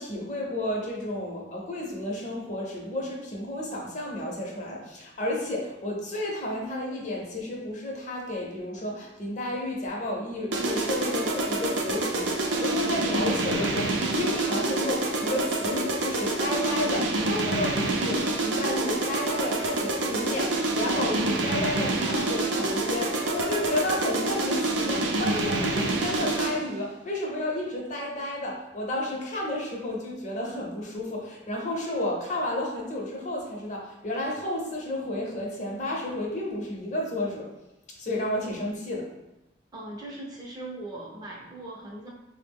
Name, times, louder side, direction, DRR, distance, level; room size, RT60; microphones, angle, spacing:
voice 1, 0.0-37.5 38.0-39.1, left 1 dB, 40° left, -1 dB, 0.6 m, -32 dB
sound 1, 10.5-26.7, right 2 dB, 85° right, 0.5 m, -27 dB
voice 2, 39.7-42.1, right 2 dB, 20° right, -3 dB, 0.5 m, -39 dB
3.7 x 2.0 x 3.4 m, 0.92 s
head